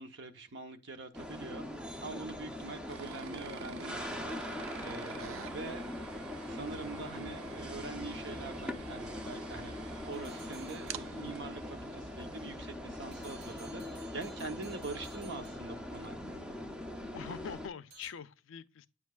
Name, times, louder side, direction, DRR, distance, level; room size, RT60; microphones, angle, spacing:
voice 1, 0.0-5.9 6.2-9.7 10.1-16.5, right 3 dB, 60° right, 0.9 m, -44 dB
sound 1, 1.1-17.7, left 1 dB, 5° right, 0.6 m, -42 dB
sound 2, 2.9-13.7, right 8 dB, 80° right, 0.4 m, -50 dB
sound 3, 10.1-11.5 13.1-16.1 17.9-18.1, right 4 dB, 30° right, 1.3 m, -56 dB
voice 2, 17.1-18.9, left 6 dB, 65° left, 0.4 m, -44 dB
8.6 x 4.7 x 2.4 m
head